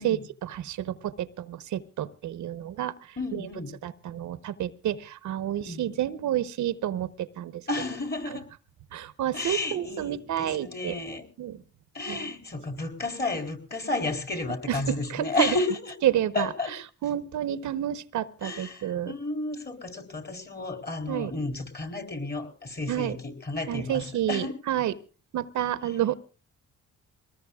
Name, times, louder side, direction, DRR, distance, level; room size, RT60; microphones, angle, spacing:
voice 1, 0.4-2.9 3.3-3.4 3.8-7.6 8.9-11.0 11.4-11.6 12.1-12.2 14.7-15.5 16.0-16.5 17.0-19.1 21.1-21.3 22.9-23.2 23.7-24.9 25.3-26.1, right 11 dB, 70° right, 14 dB, 1.0 m, -29 dB
voice 2, 3.2-3.8 5.5-5.8 7.7-8.5 9.3-11.3 11.9-16.0 16.3-16.8 18.4-24.6 25.8-26.0, left 2 dB, 35° left, 5 dB, 4.1 m, -32 dB
23.5 x 19.0 x 2.4 m, 0.35 s
cardioid pair, 90°, 30 cm